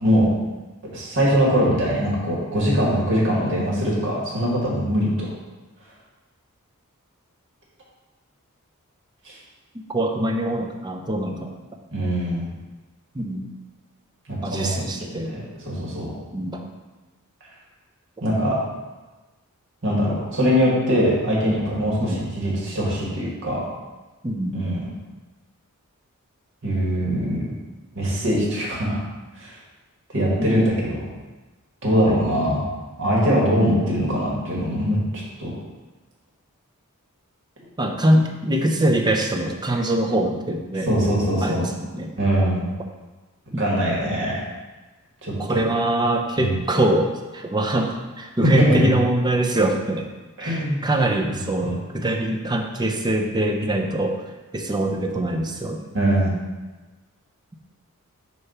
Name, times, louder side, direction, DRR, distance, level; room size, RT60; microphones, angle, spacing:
voice 1, 0.9-5.3 9.3-9.4 11.9-12.5 14.3-14.9 15.3-16.1 18.2-18.6 19.8-23.6 24.5-24.8 26.6-27.5 27.9-29.0 29.4-29.5 30.1-31.0 31.8-32.6 33.0-35.0 35.4-35.5 39.7-39.8 40.9-41.7 42.2-42.7 43.6-44.4 45.2-45.6 46.4-46.6 48.4-48.9 50.4-50.9 51.3-51.8 55.9-56.3, equal, 55° right, -5 dB, 1.9 m, -22 dB
voice 2, 9.9-11.6 13.1-13.5 14.4-15.4 16.3-16.7 22.0-22.2 24.2-24.5 32.1-32.2 37.8-40.9 41.4-42.1 43.5-43.8 45.4-50.1 50.4-54.2 54.5-55.9, right 1 dB, 20° right, 3 dB, 0.6 m, -23 dB
6.6 x 3.1 x 5.6 m, 1.2 s
head